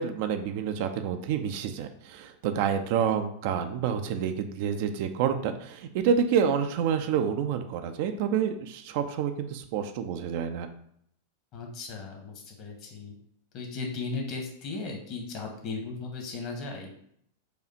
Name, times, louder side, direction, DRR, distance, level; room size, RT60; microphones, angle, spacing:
voice 1, 0.0-10.7, right 7 dB, 50° right, 7 dB, 0.4 m, -28 dB
voice 2, 11.5-13.1 13.5-16.9, left 3 dB, 40° left, 1 dB, 1.2 m, -36 dB
4.9 x 2.4 x 4.3 m, 0.68 s
figure-of-eight pair, 90°, 0 cm